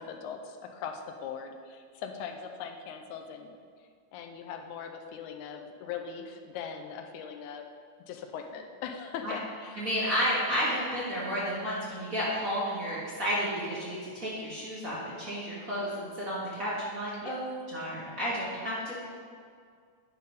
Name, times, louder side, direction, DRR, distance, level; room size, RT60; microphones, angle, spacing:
voice 1, 0.0-3.6 4.1-7.7 8.1-9.8 17.2-17.4, left 6 dB, 85° left, 5 dB, 2.1 m, -40 dB
voice 2, 9.8-19.0, equal, 35° right, -8 dB, 1.5 m, -32 dB
10.5 x 4.3 x 5.3 m, 2.1 s
omnidirectional pair, 3.4 m